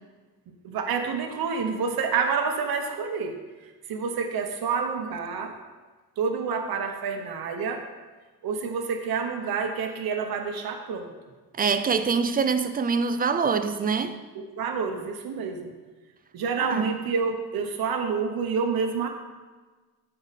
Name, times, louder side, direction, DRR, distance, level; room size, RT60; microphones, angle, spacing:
voice 1, 0.6-5.5 6.2-7.8 8.4-11.1 14.5-15.7 16.3-19.1, right 5 dB, 65° right, 1.0 m, -28 dB
voice 2, 11.5-14.2 16.6-16.9, right 5 dB, 25° right, 0.4 m, -25 dB
13.5 x 4.9 x 4.1 m
cardioid pair, 145°, 39 cm